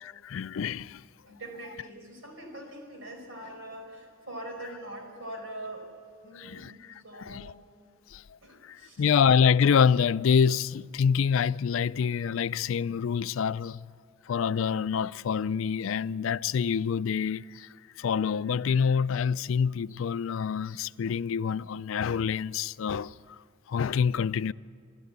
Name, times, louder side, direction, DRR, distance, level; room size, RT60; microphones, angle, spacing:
voice 1, 0.0-1.0 6.4-6.7 7.2-7.5 8.1-8.4 8.6-13.9 14.3-17.7 18.0-23.1 23.7-24.5, left 6 dB, 70° left, 0.4 m, -26 dB
voice 2, 1.3-5.9 6.2-6.8 7.0-7.6 8.4-9.1, right 1 dB, 70° right, 4.8 m, -42 dB
25.0 x 13.0 x 8.1 m
head